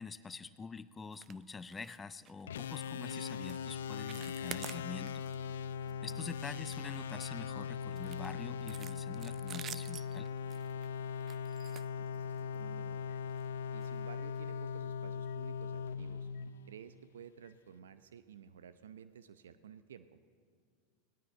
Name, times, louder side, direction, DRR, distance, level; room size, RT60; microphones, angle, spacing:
voice 1, 0.0-5.2 6.0-10.3, left 4 dB, 20° left, 14 dB, 0.6 m, -46 dB
sound 1, 1.1-1.4 1.7-2.0 2.3-2.4 2.9-3.1 3.4-3.7 3.9-5.4 5.7-5.9 6.3-7.4 8.0-12.6 13.3-13.5 13.8-13.9 14.4-14.5, right 9 dB, 35° right, 0.6 m, -49 dB
sound 2, 2.5-17.0, left 6 dB, 75° left, 0.6 m, -40 dB
voice 2, 5.8-6.2 11.8-13.2 13.7-16.3 16.7-20.2, right 8 dB, 80° right, 12 dB, 0.7 m, -53 dB
Microwave oven, 14.2-14.3 15.2-15.4 16.3-16.5 17.4-17.6, left 8 dB, 50° left, 1.6 m, -64 dB
19.0 x 18.0 x 8.0 m, 2.1 s
hypercardioid pair, 90°, 0 cm